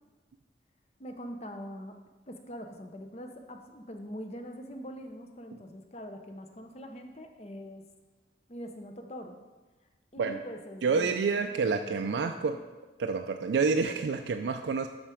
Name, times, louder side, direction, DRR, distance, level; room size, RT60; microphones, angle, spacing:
voice 1, 1.0-2.0 2.3-7.8 8.5-9.4 10.1-12.6, equal, 35° left, 5 dB, 0.7 m, -43 dB
voice 2, 10.8-12.6 13.0-14.9, right 4 dB, 75° right, 5 dB, 0.4 m, -28 dB
7.3 x 5.9 x 5.0 m, 1.2 s
head